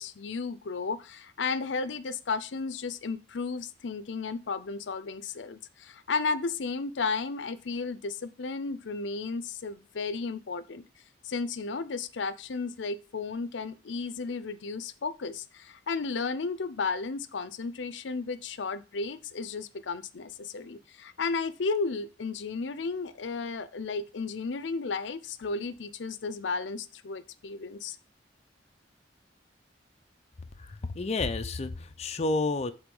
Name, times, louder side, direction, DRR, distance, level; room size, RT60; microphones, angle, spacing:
voice 1, 0.0-10.8 11.2-28.0, left 4 dB, 85° left, 13 dB, 0.6 m, -33 dB
voice 2, 30.7-32.7, left 3 dB, 35° left, 7 dB, 0.5 m, -30 dB
8.0 x 3.7 x 5.3 m, 0.33 s
head